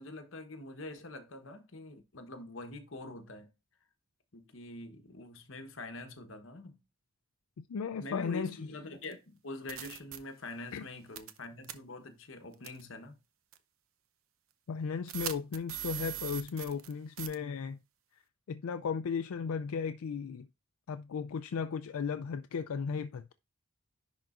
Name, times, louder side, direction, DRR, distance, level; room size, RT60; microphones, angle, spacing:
voice 1, 0.0-3.5 4.3-6.8 8.0-13.2, left 2 dB, 60° left, 1.1 m, -45 dB
voice 2, 7.6-8.6 10.7-10.9 14.7-17.8 18.5-20.5 20.9-23.3, left 6 dB, 80° left, 0.4 m, -35 dB
sound 1, 9.0-9.1 9.7-10.2 11.2-11.4 11.6-11.7 12.6-12.8 13.5-13.6 15.1-16.9 17.2-17.3, right 11 dB, 70° right, 0.7 m, -39 dB
10.5 x 3.8 x 2.5 m
head